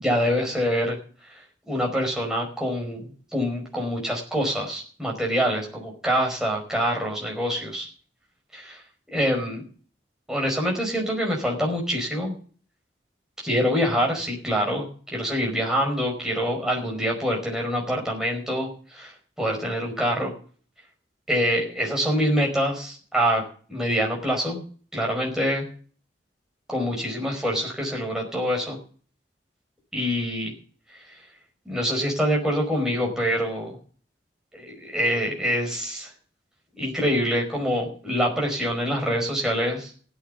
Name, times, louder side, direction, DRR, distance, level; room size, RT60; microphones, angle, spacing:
voice 1, 0.0-1.0 1.7-7.9 8.5-8.8 9.1-9.7 10.3-12.3 13.4-19.1 19.4-20.3 21.3-23.4 23.7-24.6 24.9-25.7 26.7-28.8 29.9-30.5 31.6-33.7 34.5-36.1 36.8-39.9, equal, 5° right, -1 dB, 5.1 m, -25 dB
16.0 x 9.0 x 6.8 m, 0.42 s
head